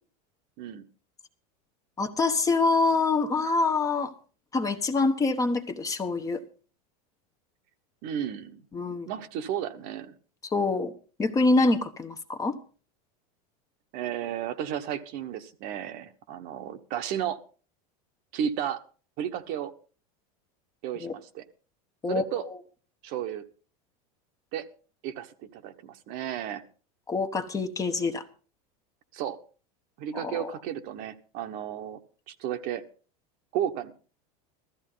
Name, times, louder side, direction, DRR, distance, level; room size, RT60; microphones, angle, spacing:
voice 1, 2.0-4.1 4.5-6.4 8.7-9.1 10.4-10.9 11.2-12.6 21.0-21.1 22.0-22.2 27.1-28.2 30.1-30.5, left 3 dB, 15° left, 7 dB, 1.0 m, -25 dB
voice 2, 8.0-8.6 9.1-10.1 13.9-17.4 18.3-18.8 19.2-19.7 20.8-21.4 22.1-22.5 23.0-23.4 24.5-24.7 25.0-26.6 29.1-29.4 30.0-32.0 32.3-32.8 33.5-33.9, right 10 dB, 50° right, 8 dB, 1.2 m, -33 dB
15.0 x 13.5 x 3.9 m, 0.39 s
supercardioid pair, 145°, 19 cm